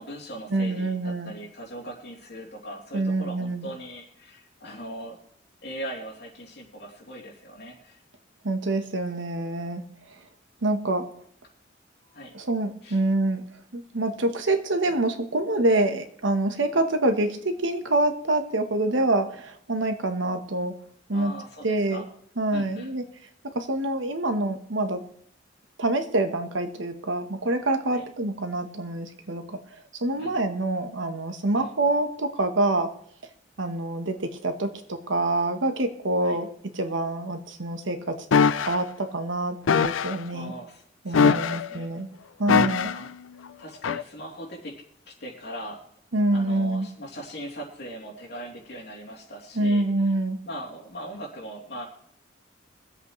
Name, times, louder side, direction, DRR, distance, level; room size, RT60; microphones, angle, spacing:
voice 1, 0.0-5.2 5.6-8.0 12.1-12.3 12.8-13.0 21.1-22.1 22.5-22.9 27.9-28.1 30.2-30.4 31.5-31.7 36.2-36.4 40.3-41.9 42.9-43.1 43.6-45.8 46.3-50.1 50.4-51.9, right 1 dB, 55° left, -2 dB, 2.9 m, -40 dB
voice 2, 0.5-1.3 2.9-3.7 8.4-9.8 10.6-11.1 12.3-13.4 13.7-20.8 21.1-21.3 21.6-22.0 22.4-23.0 23.5-25.0 25.8-29.6 29.9-32.9 33.6-36.5 36.7-40.5 41.0-42.1 42.4-42.9 46.1-46.9 49.5-50.4, right 2 dB, 80° right, 8 dB, 1.1 m, -26 dB
sound 1, 38.3-38.8 39.7-40.2 41.1-41.8 42.5-43.1 43.8-44.0, left 6 dB, 85° left, 0.5 m, -21 dB
24.0 x 8.1 x 3.1 m, 0.67 s
head